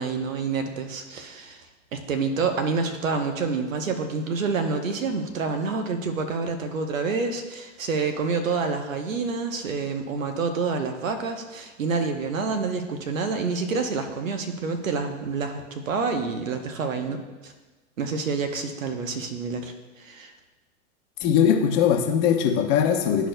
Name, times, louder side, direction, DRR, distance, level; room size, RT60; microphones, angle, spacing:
voice 1, 0.0-1.6 1.9-17.5 18.0-20.3, right 4 dB, 80° right, 6 dB, 1.0 m, -28 dB
voice 2, 21.2-23.3, left 8 dB, 40° left, 3 dB, 1.0 m, -21 dB
12.0 x 4.6 x 2.2 m, 1.2 s
hypercardioid pair, 115°, 39 cm